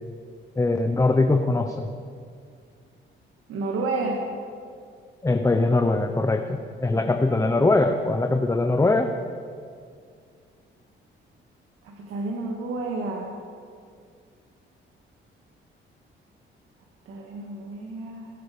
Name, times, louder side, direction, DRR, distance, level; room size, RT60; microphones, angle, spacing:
voice 1, 0.6-1.9 5.2-9.1, left 2 dB, 15° left, 5 dB, 0.8 m, -22 dB
voice 2, 3.5-4.2 11.8-13.3 17.1-18.3, right 3 dB, 85° right, 0 dB, 1.7 m, -30 dB
21.5 x 8.9 x 5.1 m, 2.2 s
cardioid pair, 105°, 21 cm